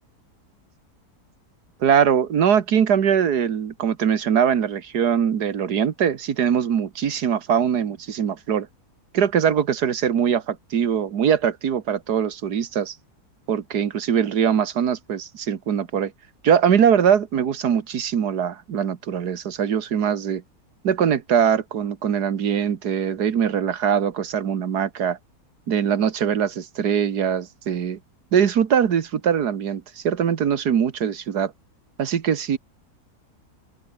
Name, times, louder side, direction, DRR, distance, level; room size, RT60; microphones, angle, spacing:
voice 1, 1.8-8.7 9.1-13.0 13.5-16.1 16.4-20.4 20.8-25.2 25.7-28.0 28.3-31.5 32.0-32.6, right 8 dB, 85° right, 1.9 m, -22 dB
open air
omnidirectional pair, 1.7 m